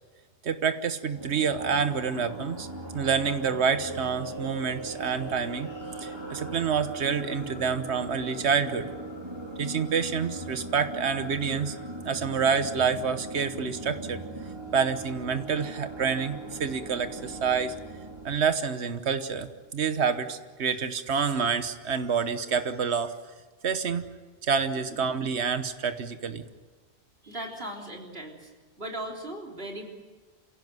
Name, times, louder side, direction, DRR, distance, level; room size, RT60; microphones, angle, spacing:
voice 1, 0.4-2.7 2.9-5.7 6.0-8.9 9.6-11.7 12.0-14.2 14.7-17.8 18.2-23.1 23.6-24.0 24.4-26.4, right 6 dB, 75° right, 9 dB, 1.4 m, -28 dB
sound 1, 1.1-18.3, right 2 dB, 25° right, 3.1 m, -39 dB
voice 2, 27.2-28.5 28.8-29.9, right 1 dB, 60° right, 0 dB, 3.9 m, -37 dB
27.5 x 17.0 x 9.4 m, 1.3 s
omnidirectional pair, 1.1 m